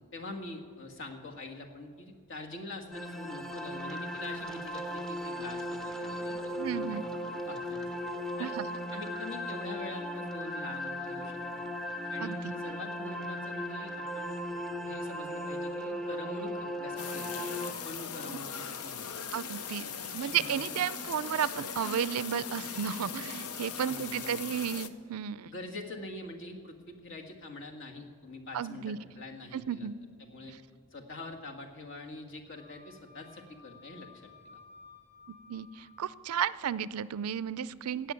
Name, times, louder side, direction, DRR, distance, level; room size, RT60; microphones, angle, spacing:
voice 1, 0.0-7.0 7.5-7.9 8.4-8.5 8.9-11.7 12.1-14.5 14.9-17.3 17.8-19.1 20.2-20.7 23.8-24.4 25.5-29.9 30.2-30.6 30.9-34.6, left 2 dB, 60° left, 2 dB, 1.7 m, -44 dB
sound 1, 2.9-17.7, equal, ahead, 0.6 m, -37 dB
voice 2, 6.6-7.0 8.4-8.7 12.2-12.5 19.3-25.5 28.5-29.0 29.5-29.9 30.5-30.6 35.3-38.1, right 8 dB, 75° right, 17 dB, 0.4 m, -33 dB
sound 2, 17.0-24.9, left 6 dB, 80° left, 0.8 m, -39 dB
Wind instrument woodwind instrument, 32.5-36.2, left 4 dB, 40° left, 4.1 m, -56 dB
17.0 x 6.3 x 8.7 m, 2.2 s
head